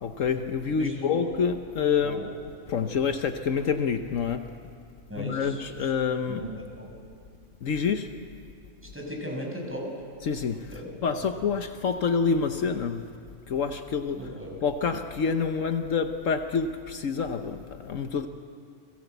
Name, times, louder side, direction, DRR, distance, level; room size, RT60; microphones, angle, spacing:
voice 1, 0.0-2.2 2.7-4.5 5.2-6.4 7.6-8.2 10.2-10.7 11.0-13.1 13.5-14.3 14.6-18.3, left 6 dB, 70° left, 7 dB, 1.3 m, -27 dB
voice 2, 0.7-1.3 2.0-2.3 5.1-5.6 6.3-6.9 8.9-9.9 10.7-10.9 11.2-11.3 14.2-14.5, equal, 10° right, -2 dB, 6.3 m, -36 dB
30.0 x 22.0 x 8.1 m, 2.3 s
omnidirectional pair, 1.4 m